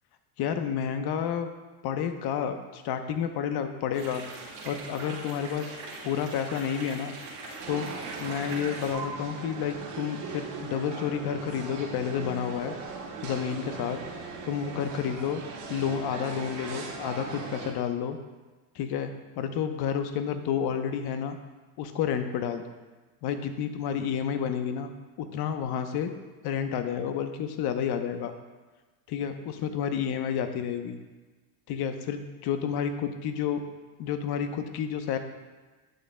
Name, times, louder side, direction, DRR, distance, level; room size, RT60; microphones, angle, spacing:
voice 1, 0.4-1.5 1.8-4.2 4.6-5.8 6.0-7.1 7.7-7.9 8.2-12.7 13.2-14.0 14.5-15.4 15.7-18.2 18.7-21.4 21.8-22.6 23.2-24.9 25.2-26.1 26.4-28.3 29.1-31.0 31.7-33.6 34.0-35.2, left 8 dB, 60° left, 7 dB, 0.9 m, -30 dB
sound 1, 3.9-8.9, right 3 dB, 85° right, 2.4 m, -41 dB
sound 2, 7.6-17.7, right 4 dB, 70° right, 1.9 m, -39 dB
10.5 x 6.5 x 2.2 m, 1.3 s
supercardioid pair, 85°, 45 cm